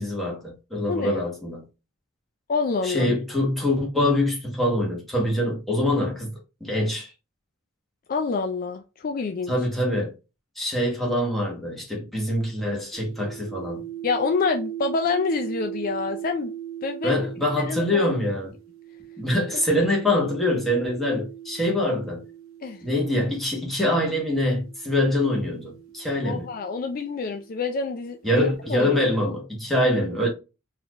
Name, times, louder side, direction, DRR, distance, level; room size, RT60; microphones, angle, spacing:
voice 1, 0.0-1.7 2.8-7.1 9.5-10.1 10.6-13.9 17.0-18.5 19.2-22.2 22.8-26.5 28.2-30.3, left 1 dB, ahead, 1.1 m, -24 dB
voice 2, 0.9-1.2 2.5-3.1 8.1-9.5 14.0-16.5 16.8-17.3 17.6-18.2 19.5-19.6 22.6-22.8 26.2-29.0, left 4 dB, 40° left, 0.3 m, -27 dB
sound 1, 12.9-23.3 24.2-27.9, right 11 dB, 75° right, 0.8 m, -39 dB
4.1 x 2.5 x 2.9 m
head